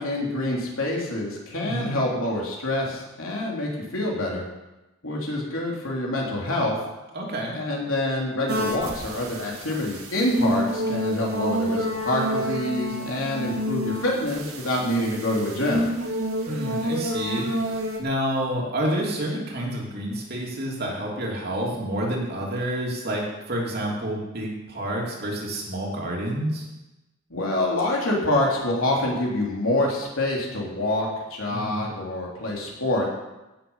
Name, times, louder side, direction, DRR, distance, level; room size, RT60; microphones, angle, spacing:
voice 1, 0.0-4.4 5.0-6.7 7.5-15.9 27.3-33.1, left 1 dB, 70° left, -2 dB, 3.3 m, -26 dB
voice 2, 7.1-7.5 16.5-26.7 31.5-31.9, right 1 dB, 45° right, -2 dB, 2.9 m, -29 dB
sound 1, 8.5-18.0, equal, 80° right, 2.2 m, -29 dB
16.5 x 7.2 x 5.6 m, 1.0 s
head